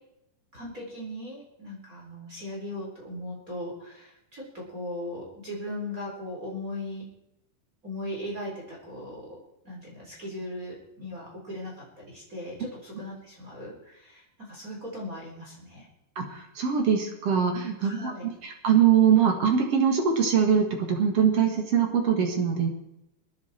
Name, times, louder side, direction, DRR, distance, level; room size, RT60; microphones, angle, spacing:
voice 1, 0.5-7.1 7.8-9.4 9.6-15.9 17.8-18.3, left 1 dB, 20° right, -3 dB, 4.0 m, -38 dB
voice 2, 16.2-18.1 18.4-22.7, right 7 dB, 50° right, 3 dB, 1.9 m, -23 dB
22.0 x 10.5 x 4.4 m, 0.85 s
omnidirectional pair, 5.2 m